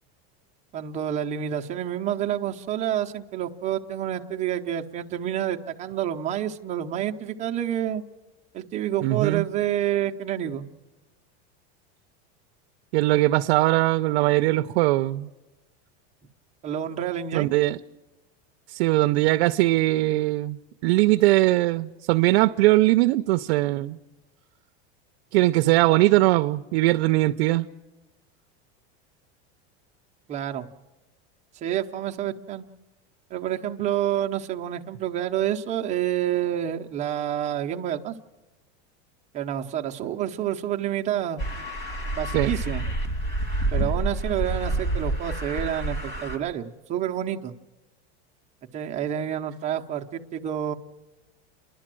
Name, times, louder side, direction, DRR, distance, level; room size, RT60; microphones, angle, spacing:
voice 1, 0.7-8.0 8.5-10.7 16.6-17.5 30.3-30.7 31.6-32.6 33.3-38.1 39.3-41.4 42.2-42.8 43.7-47.5 48.7-50.7, right 11 dB, 20° right, 0.7 m, -28 dB
voice 2, 9.0-9.5 12.9-15.3 17.3-17.8 18.7-24.0 25.3-27.7 42.3-42.5, right 18 dB, 65° right, 0.6 m, -21 dB
sound 1, 41.4-46.4, right 2 dB, 30° left, 2.6 m, -28 dB
30.0 x 11.5 x 7.6 m
supercardioid pair, 165°, 33 cm